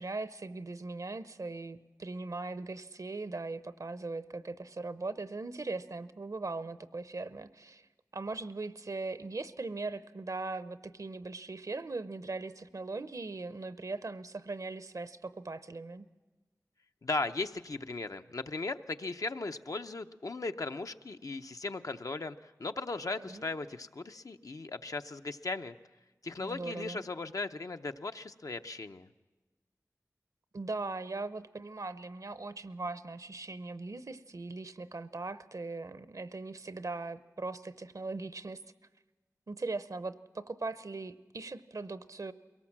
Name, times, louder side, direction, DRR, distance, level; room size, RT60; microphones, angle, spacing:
voice 1, 0.0-7.9 8.1-16.1 23.2-23.5 26.4-27.0 30.5-38.6 39.5-42.3, right 3 dB, 65° right, 13 dB, 0.7 m, -39 dB
voice 2, 17.0-25.8 26.2-29.1, left 3 dB, 65° left, 7 dB, 0.7 m, -37 dB
22.5 x 18.0 x 7.3 m, 1.2 s
wide cardioid pair, 45°, 6 cm